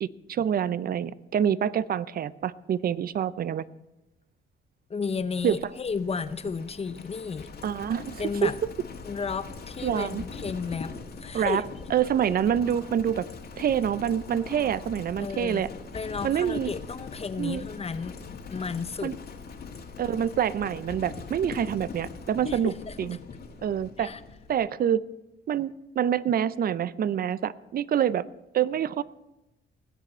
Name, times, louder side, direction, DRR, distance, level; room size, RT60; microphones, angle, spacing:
voice 1, 0.0-3.6 5.4-5.6 7.6-8.5 9.8-10.2 11.3-11.6 11.9-13.3 13.6-15.7 16.2-16.7 17.4-17.6 19.0-19.2 20.0-22.7 23.0-23.2 23.6-24.1 24.5-25.0 25.5-28.3 28.5-29.0, right 9 dB, 50° right, 18 dB, 0.5 m, -26 dB
voice 2, 4.9-7.5 8.2-8.6 9.0-10.9 11.2-11.6 15.2-15.6 15.9-18.2 18.5-19.2 22.4-23.0 24.0-24.2, left 5 dB, 30° left, 13 dB, 0.7 m, -33 dB
Livestock farm animals working animals, 5.1-24.7, left 5 dB, 55° left, 1.9 m, -42 dB
sound 1, 9.0-15.4, equal, 20° right, 1.8 m, -55 dB
20.0 x 8.2 x 4.3 m, 0.96 s
cardioid pair, 90°, 20 cm